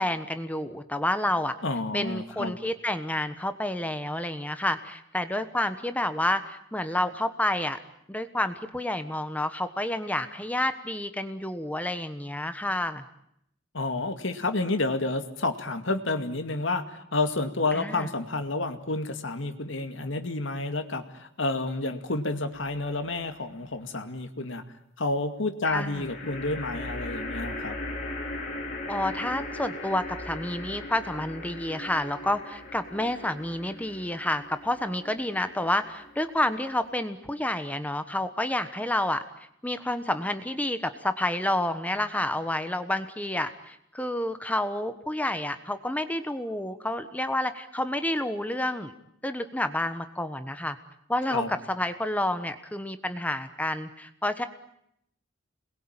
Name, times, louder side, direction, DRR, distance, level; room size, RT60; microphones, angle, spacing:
voice 1, 0.0-1.5 1.9-7.8 8.1-13.0 17.7-18.1 25.6-26.1 28.9-39.2 39.6-48.9 49.2-50.8 51.1-54.5, left 1 dB, 10° left, 10 dB, 1.2 m, -29 dB
voice 2, 1.6-2.5 13.7-24.6 25.0-27.8 51.3-51.5, left 2 dB, 70° left, 7 dB, 2.3 m, -30 dB
sound 1, 22.5-23.2 25.6-37.0, left 1 dB, 40° left, 5.9 m, -39 dB
28.0 x 21.5 x 8.9 m, 0.74 s
head